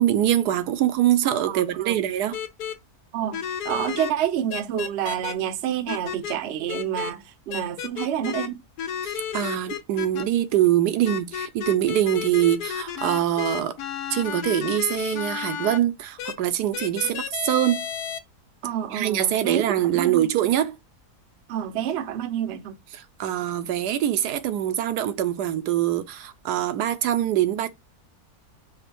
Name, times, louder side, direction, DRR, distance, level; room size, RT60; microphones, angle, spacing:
voice 1, 0.0-2.4 9.0-13.8 14.1-17.8 18.9-20.8 23.2-27.7, right 12 dB, 85° right, 1.2 m, -23 dB
voice 2, 1.5-2.0 3.1-8.6 17.0-17.1 18.6-19.7 19.9-20.3 21.5-22.7, right 10 dB, 60° right, 0.7 m, -28 dB
sound 1, 2.3-2.7 3.3-4.1 4.5-5.3 5.9-6.3 6.7-7.1 7.5-8.5 8.8-10.2 11.1-15.8 16.2-16.3 16.7-18.2, left 8 dB, 80° left, 1.3 m, -32 dB
5.1 x 2.2 x 4.3 m
omnidirectional pair, 1.7 m